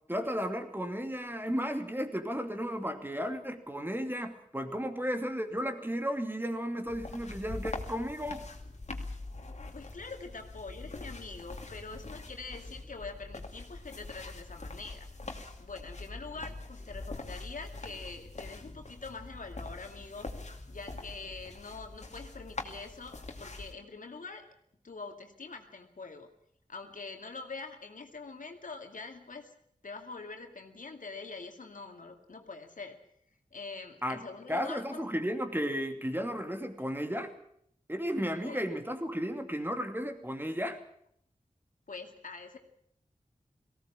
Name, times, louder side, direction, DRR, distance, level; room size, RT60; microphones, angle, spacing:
voice 1, 0.1-8.4 34.0-34.2 34.5-37.3 37.9-40.8, equal, 15° right, 6 dB, 2.6 m, -34 dB
sound 1, 6.9-23.7, left 2 dB, 60° left, 2.6 m, -43 dB
voice 2, 9.7-15.1 15.6-20.3 20.7-24.5 24.8-26.3 26.7-29.5 29.8-33.0 33.5-35.0 38.4-38.6 41.9-42.6, left 4 dB, 80° left, 5 dB, 2.4 m, -44 dB
18.5 x 17.0 x 8.7 m, 0.69 s
wide cardioid pair, 65°, 13 cm